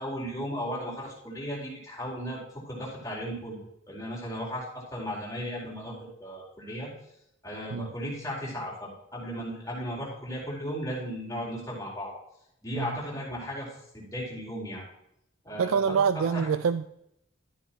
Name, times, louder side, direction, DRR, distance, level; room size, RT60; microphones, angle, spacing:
voice 1, 0.0-3.6 3.9-4.7 4.9-6.9 7.4-12.1 12.6-14.8 15.4-16.5, equal, 15° left, -5 dB, 4.5 m, -36 dB
voice 2, 15.6-16.9, right 6 dB, 90° right, 13 dB, 0.4 m, -26 dB
13.0 x 9.0 x 3.1 m, 0.77 s
head